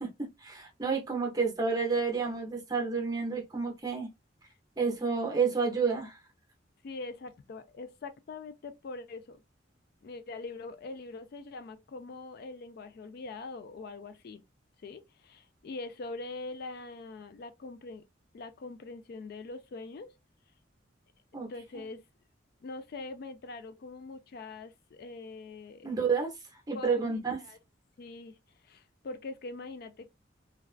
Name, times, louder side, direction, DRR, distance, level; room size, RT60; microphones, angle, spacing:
voice 1, 0.0-4.1 4.8-6.2 21.3-21.5 25.8-26.3 26.7-27.4, right 5 dB, 20° right, 0.6 m, -30 dB
voice 2, 6.8-9.4 10.0-14.4 14.8-18.0 18.3-20.1 21.3-22.0 22.6-25.9 26.7-27.6 28.0-28.4 28.6-30.1, left 3 dB, 55° left, 0.3 m, -43 dB
2.3 x 2.2 x 2.3 m
head